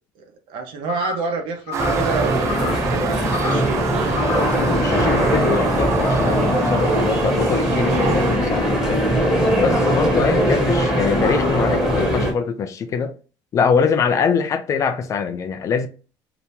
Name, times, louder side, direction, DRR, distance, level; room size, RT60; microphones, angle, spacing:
voice 1, 0.2-3.8, right 4 dB, 70° right, 1.1 m, -28 dB
sound 1, 0.9-1.3 1.7-2.1 2.5-2.9 3.3-3.7 4.1-4.6, left 7 dB, 85° left, 0.8 m, -31 dB
sound 2, 1.7-8.4, right 8 dB, 35° right, 0.4 m, -28 dB
sound 3, 1.8-12.3, equal, 5° right, 1.4 m, -20 dB
voice 2, 4.5-9.0 9.5-13.1 13.5-15.9, left 6 dB, 40° left, 0.4 m, -23 dB
2.9 x 2.7 x 3.3 m
cardioid pair, 140°, 9 cm